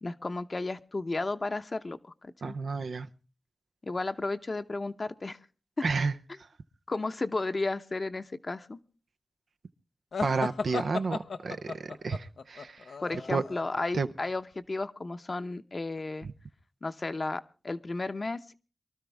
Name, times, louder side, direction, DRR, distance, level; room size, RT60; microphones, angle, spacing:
voice 1, 0.0-2.6 3.8-5.4 5.8-5.9 6.9-8.8 13.0-16.3 16.8-18.5, left 3 dB, 50° left, 10 dB, 0.8 m, -33 dB
voice 2, 2.4-3.1 5.8-6.1 10.2-12.9 13.3-13.4 13.9-14.1 16.2-16.3, right 4 dB, 85° right, 9 dB, 0.6 m, -31 dB
sound 1, 10.1-13.8, left 4 dB, 85° left, 0.7 m, -35 dB
23.5 x 12.5 x 3.4 m, 0.35 s
cardioid pair, 40°, 0 cm